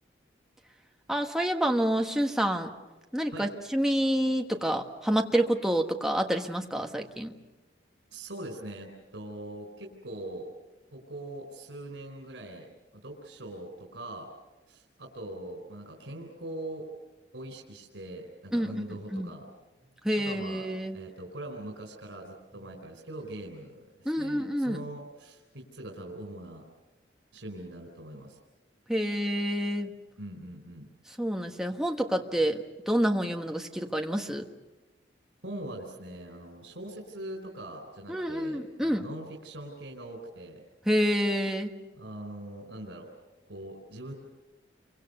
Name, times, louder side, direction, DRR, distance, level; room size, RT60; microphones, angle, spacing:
voice 1, 1.1-2.7 3.1-7.3 18.5-18.8 19.1-19.3 20.0-21.0 24.0-24.8 28.9-29.9 31.2-34.5 38.1-39.0 40.8-41.7, equal, 5° right, 3 dB, 1.4 m, -28 dB
voice 2, 8.1-10.5 10.9-12.7 13.0-14.3 14.7-16.8 17.3-19.4 20.2-20.7 20.9-26.6 27.3-28.4 30.2-30.9 35.4-40.6 41.9-43.1 43.5-44.1, right 1 dB, 85° right, 2 dB, 4.0 m, -42 dB
29.0 x 24.5 x 6.7 m, 1.1 s
head